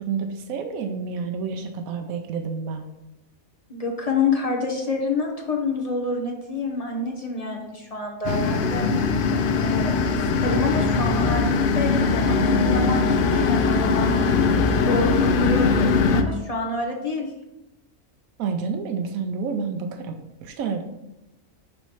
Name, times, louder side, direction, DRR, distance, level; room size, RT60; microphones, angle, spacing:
voice 1, 0.0-2.9 18.4-20.8, right 5 dB, 85° right, 5 dB, 1.1 m, -29 dB
voice 2, 3.7-8.9 9.3-10.0 10.4-14.2 14.6-17.3, left 3 dB, 35° left, 0 dB, 0.7 m, -28 dB
sound 1, 8.2-16.2, left 4 dB, 70° left, 0.5 m, -21 dB
6.2 x 3.1 x 5.5 m, 0.93 s
omnidirectional pair, 1.4 m